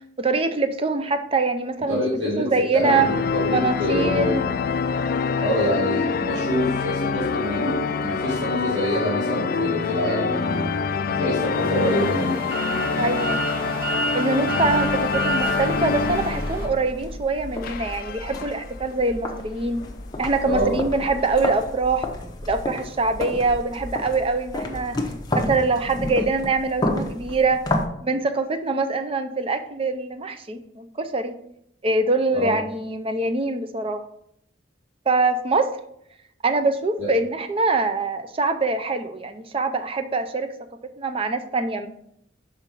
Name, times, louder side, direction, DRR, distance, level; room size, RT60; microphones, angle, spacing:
voice 1, 0.2-3.1 3.5-4.4 13.0-13.4 14.1-19.8 20.2-22.1 22.4-25.0 25.3-27.6 28.0-31.4 31.8-34.0 35.1-35.7 36.4-40.5 40.8-41.9, right 3 dB, 30° right, 9 dB, 0.5 m, -24 dB
voice 2, 1.9-4.4 5.4-10.7 11.0-12.4 20.4-20.8 32.3-32.6 37.0-37.1, left 1 dB, 70° right, -7 dB, 2.3 m, -25 dB
sound 1, 2.8-17.2 17.5-18.8 19.4-19.5 19.7-19.9 20.6-21.7, left 5 dB, 50° left, 0.3 m, -26 dB
sound 2, 11.4-16.7, right 2 dB, 50° right, 1.4 m, -30 dB
sound 3, 14.6-27.9, left 1 dB, 20° left, 0.7 m, -31 dB
5.7 x 5.3 x 4.5 m, 0.74 s
head